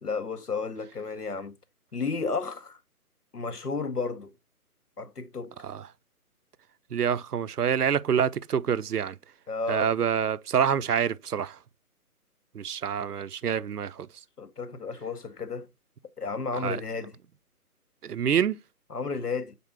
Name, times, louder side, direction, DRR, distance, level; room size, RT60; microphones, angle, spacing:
voice 1, 0.0-1.5 1.9-2.8 3.3-4.3 5.0-5.6 9.5-9.9 14.4-15.7 16.2-17.2 18.9-19.6, left 4 dB, 90° left, 0.9 m, -32 dB
voice 2, 6.9-9.2 9.7-11.6 12.5-14.1 16.6-16.8 18.0-18.6, right 8 dB, 85° right, 0.5 m, -26 dB
6.6 x 4.2 x 3.3 m
figure-of-eight pair, 145°, 45 cm